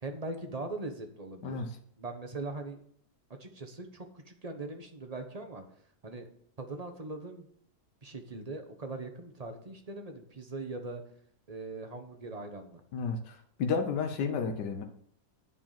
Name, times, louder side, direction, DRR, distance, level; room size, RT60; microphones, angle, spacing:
voice 1, 0.0-1.7 2.0-2.8 3.4-5.6 6.0-6.3 6.6-7.5 8.0-11.0 11.5-12.8, right 2 dB, 25° right, 5 dB, 1.2 m, -40 dB
voice 2, 12.9-13.3 13.6-14.8, left 5 dB, 85° left, 5 dB, 1.5 m, -31 dB
10.5 x 4.8 x 7.4 m, 0.64 s
omnidirectional pair, 1.8 m